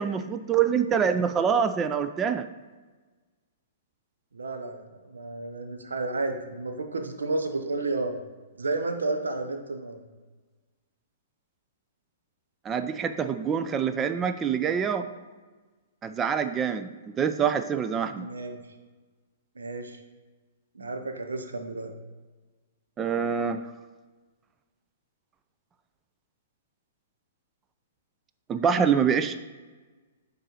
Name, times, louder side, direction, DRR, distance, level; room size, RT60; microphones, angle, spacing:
voice 1, 0.0-2.5 12.6-15.1 16.0-16.9 17.2-18.3 23.0-23.6 28.5-29.4, right 7 dB, 20° right, 10 dB, 0.3 m, -25 dB
voice 2, 4.3-8.1 8.6-10.0 18.1-18.6 19.6-20.0 20.7-21.9, right 2 dB, 75° right, 6 dB, 0.7 m, -31 dB
8.8 x 3.9 x 2.9 m, 1.3 s
figure-of-eight pair, 115°, 0 cm